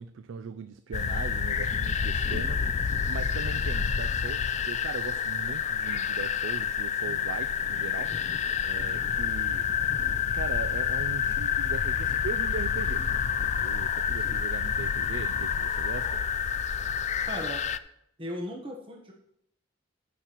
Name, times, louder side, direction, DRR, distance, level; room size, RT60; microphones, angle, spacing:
voice 1, 0.0-9.7 10.3-13.3 13.5-16.2, right 6 dB, 85° right, 0.4 m, -39 dB
sound 1, 0.9-17.8, left 7 dB, 35° left, 0.3 m, -28 dB
voice 2, 8.8-9.1 14.2-14.4 17.2-17.7 18.2-19.1, equal, 30° right, 1.1 m, -38 dB
14.5 x 6.5 x 3.0 m
head